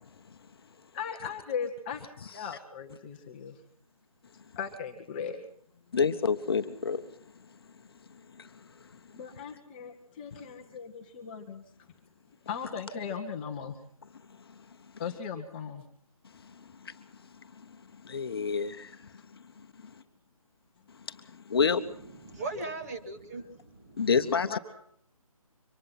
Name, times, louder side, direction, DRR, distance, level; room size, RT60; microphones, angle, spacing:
voice 1, 0.9-2.0 2.3-3.6 4.6-5.4 9.1-11.6 12.5-13.8 15.0-15.8 24.5-24.6, left 6 dB, 15° left, 1.0 m, -37 dB
voice 2, 5.9-7.0 18.1-18.9 21.5-21.8 24.0-24.6, left 5 dB, 40° left, 1.1 m, -27 dB
voice 3, 21.8-24.1, right 2 dB, 25° right, 1.8 m, -39 dB
24.0 x 19.5 x 5.8 m
figure-of-eight pair, 165°, 19 cm